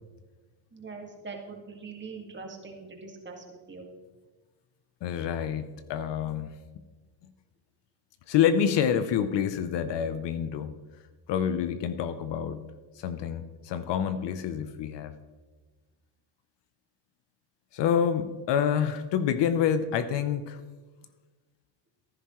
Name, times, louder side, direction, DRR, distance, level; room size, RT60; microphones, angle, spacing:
voice 1, 0.7-3.9, right 4 dB, 20° right, 1 dB, 2.1 m, -42 dB
voice 2, 5.0-6.6 8.3-10.7 11.3-12.7 13.0-15.1 17.7-20.6, left 8 dB, 55° left, 11 dB, 0.8 m, -27 dB
15.0 x 10.5 x 3.1 m, 1.3 s
cardioid pair, 110°, 50 cm